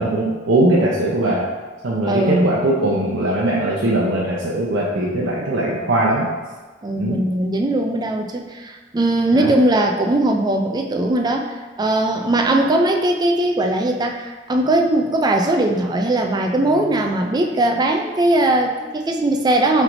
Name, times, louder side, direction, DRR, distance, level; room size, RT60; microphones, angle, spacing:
voice 1, 0.0-1.5 1.8-6.3 7.0-7.2 9.3-9.6, right 1 dB, 70° right, -5 dB, 0.6 m, -20 dB
voice 2, 2.1-2.5 6.8-19.8, right 1 dB, 20° right, 3 dB, 0.4 m, -19 dB
5.8 x 3.3 x 2.6 m, 1.3 s
head